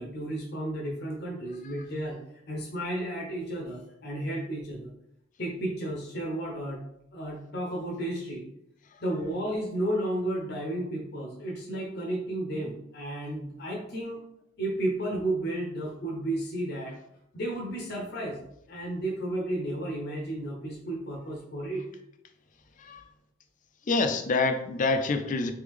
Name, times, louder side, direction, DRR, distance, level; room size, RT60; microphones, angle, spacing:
voice 1, 0.0-2.2 2.5-4.9 5.4-6.8 7.1-8.5 9.0-14.2 14.6-17.0 17.3-18.4 18.7-21.8, right 1 dB, 60° left, -1 dB, 0.9 m, -32 dB
voice 2, 23.9-25.5, left 3 dB, 45° left, 8 dB, 0.4 m, -26 dB
3.5 x 3.4 x 3.6 m, 0.76 s
head